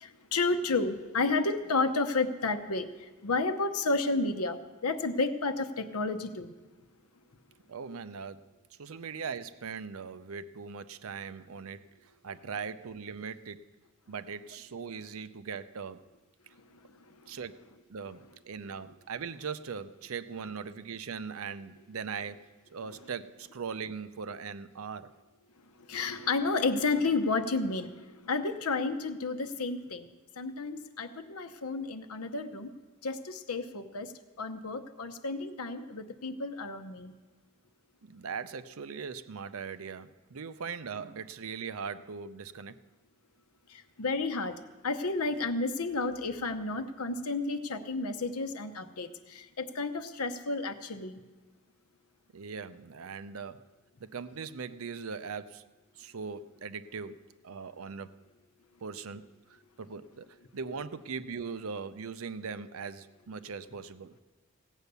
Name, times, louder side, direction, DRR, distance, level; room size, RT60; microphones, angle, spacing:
voice 1, 0.0-2.9 3.2-6.5 25.9-27.9 28.2-30.1 30.4-32.7 33.0-34.1 34.4-37.1 44.0-44.6 44.8-51.2, left 3 dB, 85° left, 9 dB, 0.9 m, -31 dB
voice 2, 7.7-8.5 8.8-11.9 12.2-13.6 14.1-16.0 17.3-17.6 17.9-25.1 38.0-42.8 52.3-53.6 54.0-55.7 56.0-58.1 58.8-59.2 59.8-64.2, right 5 dB, 75° right, 13 dB, 0.5 m, -40 dB
16.5 x 8.2 x 6.8 m, 1.3 s
head